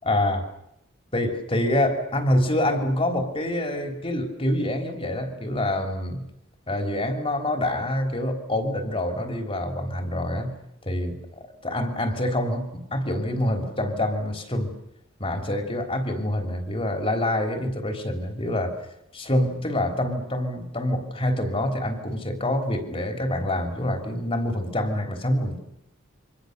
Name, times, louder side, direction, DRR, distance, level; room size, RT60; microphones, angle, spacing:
voice 1, 0.1-0.5 1.1-6.3 6.7-10.5 10.8-14.7 15.2-18.8 19.1-25.6, left 1 dB, 30° left, 5 dB, 3.6 m, -26 dB
28.5 x 25.0 x 6.8 m, 0.82 s
head